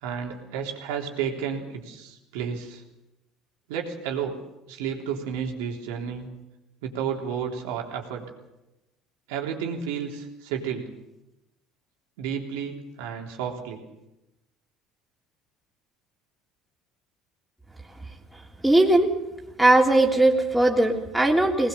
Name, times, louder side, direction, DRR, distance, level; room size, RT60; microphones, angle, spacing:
voice 1, 0.0-2.8 3.7-4.4 4.7-6.3 6.8-8.2 9.3-10.9 12.2-13.8, right 7 dB, 75° right, 1 dB, 3.5 m, -31 dB
voice 2, 18.6-19.1 19.6-21.7, right 2 dB, 5° right, -1 dB, 3.4 m, -19 dB
20.5 x 20.0 x 7.1 m, 0.97 s
hypercardioid pair, 70°, 0 cm